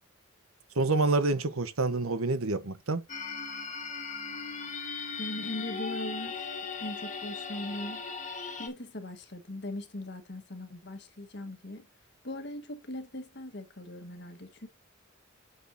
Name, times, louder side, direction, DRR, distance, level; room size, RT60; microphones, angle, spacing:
voice 1, 0.7-3.0, right 3 dB, 80° right, 1.1 m, -27 dB
sound 1, 3.1-8.7, left 5 dB, 35° left, 1.4 m, -38 dB
voice 2, 5.2-6.5 6.8-8.0 8.6-11.9 12.2-14.7, left 1 dB, 50° left, 1.5 m, -40 dB
8.9 x 6.4 x 2.8 m
head